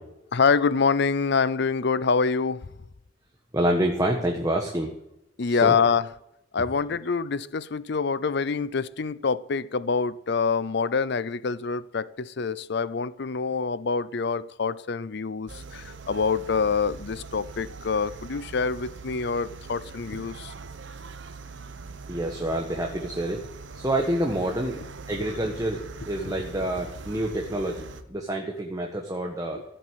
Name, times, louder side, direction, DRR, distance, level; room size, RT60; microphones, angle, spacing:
voice 1, 0.3-2.7 5.4-6.1 6.5-20.5, left 5 dB, 60° left, 0.6 m, -26 dB
voice 2, 3.5-4.9 5.5-5.8 22.1-23.4 23.7-24.8 25.1-29.6, right 1 dB, 20° right, 1.4 m, -27 dB
sound 1, 15.5-28.0, right 4 dB, 70° right, 1.1 m, -42 dB
14.5 x 7.8 x 8.2 m
head